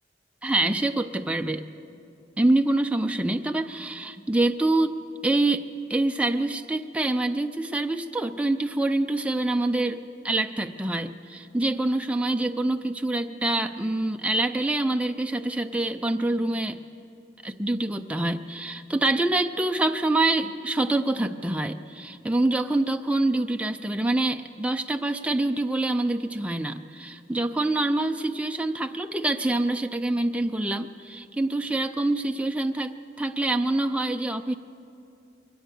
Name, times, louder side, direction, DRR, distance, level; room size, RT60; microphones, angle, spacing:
voice 1, 0.4-1.6 2.4-5.0 5.2-5.6 5.9-16.8 17.4-34.5, right 2 dB, 5° right, 5 dB, 0.5 m, -26 dB
22.5 x 18.0 x 6.7 m, 2.6 s
head